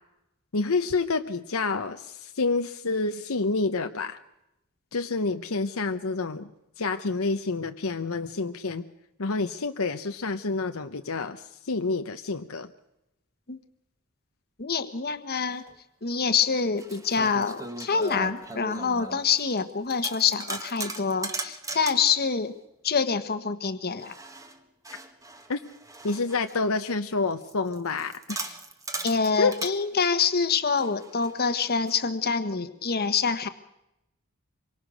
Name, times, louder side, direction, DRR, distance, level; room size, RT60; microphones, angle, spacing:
voice 1, 0.5-4.2 4.9-6.5 6.8-8.9 9.2-12.7 25.5-25.6 26.0-28.6 29.4-29.5, left 3 dB, 70° left, 7 dB, 0.9 m, -28 dB
voice 2, 14.6-15.6 16.0-22.5 22.8-24.1 29.0-33.5, left 5 dB, 45° left, 11 dB, 1.3 m, -26 dB
sound 1, 15.7-15.8 16.5-19.6 19.9-22.2 24.0-26.9 27.4-29.8 30.8-32.0, right 2 dB, 15° right, 1.5 m, -38 dB
26.0 x 23.0 x 6.4 m, 0.89 s
head